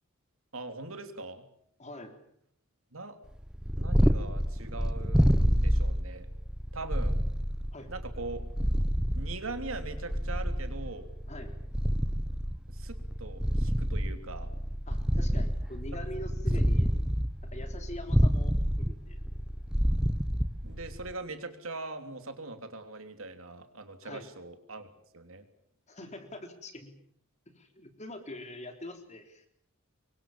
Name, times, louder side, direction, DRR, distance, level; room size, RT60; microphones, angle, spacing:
voice 1, 0.5-1.4 2.9-3.2 3.7-6.3 6.7-7.2 7.9-8.4 9.1-11.1 12.7-14.5 15.9-16.0 20.6-24.9 25.1-25.4, right 3 dB, 70° right, 7 dB, 3.2 m, -41 dB
voice 2, 1.8-2.2 7.7-7.9 11.3-11.5 14.9-16.9 17.4-19.3 24.0-24.3 25.9-26.9 27.5-29.5, left 1 dB, 30° left, 6 dB, 3.7 m, -44 dB
Purr, 3.4-21.1, equal, 5° right, 1.2 m, -28 dB
26.5 x 23.5 x 7.4 m, 0.68 s
head